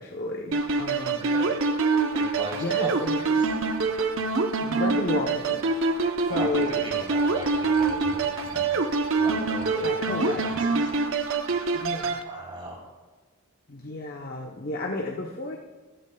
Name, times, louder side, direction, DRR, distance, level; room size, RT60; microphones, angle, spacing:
voice 1, 0.0-1.3 2.6-3.2 4.6-5.8 6.2-6.9 9.8-10.5 11.7-12.3 13.7-15.6, left 2 dB, 45° left, 1 dB, 0.8 m, -32 dB
sound 1, 0.5-12.2, right 4 dB, 65° right, 0.7 m, -25 dB
voice 2, 1.1-1.6 2.1-3.5 6.2-8.8 9.2-10.9 12.3-12.8, right 1 dB, 25° right, -3 dB, 3.5 m, -38 dB
sound 2, 1.9-4.6 4.9-5.0 5.3-5.4 6.3-12.0 12.3-12.4 12.7-12.8, equal, 40° right, 1.2 m, -40 dB
14.5 x 13.0 x 2.3 m, 1.3 s
head